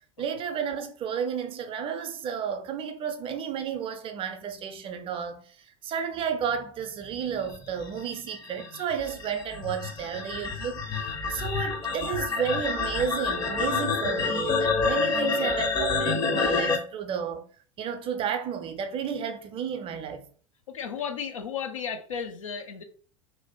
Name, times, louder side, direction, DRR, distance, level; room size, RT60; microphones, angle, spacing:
voice 1, 0.2-5.4 5.8-10.8 11.3-17.5 17.8-20.3, right 7 dB, 35° right, 0.5 m, -32 dB
sound 1, 7.5-16.8, left 4 dB, 25° left, 0.6 m, -28 dB
voice 2, 20.7-22.8, left 7 dB, 80° left, 0.5 m, -34 dB
2.6 x 2.1 x 2.9 m
figure-of-eight pair, 80°, 17 cm